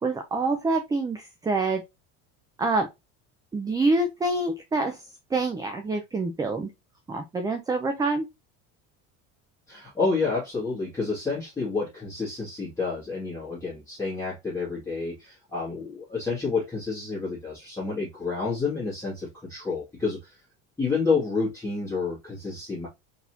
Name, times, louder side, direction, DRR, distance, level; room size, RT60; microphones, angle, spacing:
voice 1, 0.0-1.8 2.6-2.9 3.5-5.0 5.3-6.7 7.1-8.2, right 3 dB, 10° right, 0.5 m, -26 dB
voice 2, 9.7-20.4 20.8-22.9, left 4 dB, 10° left, 2.1 m, -29 dB
4.2 x 4.1 x 2.8 m
cardioid pair, 150°, 36 cm